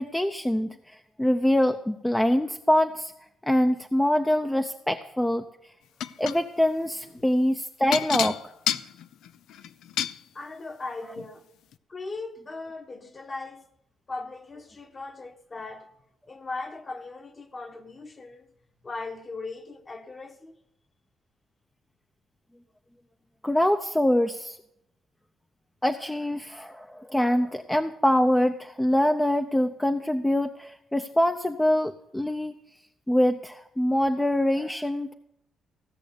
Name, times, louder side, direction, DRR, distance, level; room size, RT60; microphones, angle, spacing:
voice 1, 0.0-3.1 3.5-5.4 6.2-8.4 23.4-24.6 25.8-32.5 33.1-35.1, left 1 dB, 10° left, 0.7 m, -24 dB
sound 1, 6.0-6.4 7.9-10.2 11.2-11.3 11.7-11.8, left 10 dB, 80° left, 0.5 m, -29 dB
voice 2, 10.3-11.5 11.9-13.7 14.1-15.9 16.3-18.5 18.8-20.6, left 3 dB, 30° left, 1.3 m, -38 dB
16.0 x 6.5 x 8.5 m
cardioid pair, 90°, 0 cm